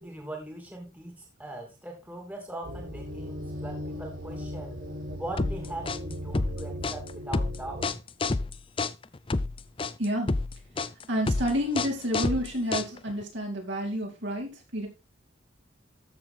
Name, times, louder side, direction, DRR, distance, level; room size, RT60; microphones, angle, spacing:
voice 1, 0.0-4.8 5.1-7.9, right 1 dB, 10° right, 2 dB, 2.6 m, -40 dB
sound 1, 2.6-7.9, equal, 85° right, 5.0 m, -38 dB
sound 2, 5.4-13.2, left 3 dB, 25° left, 0.5 m, -29 dB
voice 2, 10.0-10.3 11.1-14.9, equal, 60° right, 0 dB, 4.6 m, -29 dB
13.5 x 7.3 x 3.8 m, 0.26 s
head